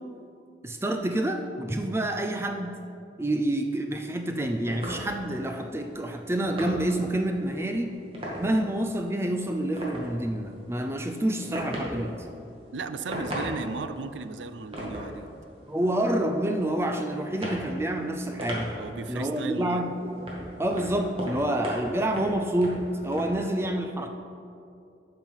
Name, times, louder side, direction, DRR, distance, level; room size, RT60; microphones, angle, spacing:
voice 1, 0.6-2.8 3.2-7.9 8.4-12.2 15.7-18.7 19.1-24.1, right 1 dB, 15° right, 5 dB, 0.5 m, -28 dB
sound 1, 4.1-23.3, equal, 30° right, 1.9 m, -39 dB
voice 2, 12.7-15.3 18.8-19.8, right 4 dB, 85° right, 11 dB, 0.5 m, -36 dB
11.5 x 5.8 x 5.6 m, 2.6 s
head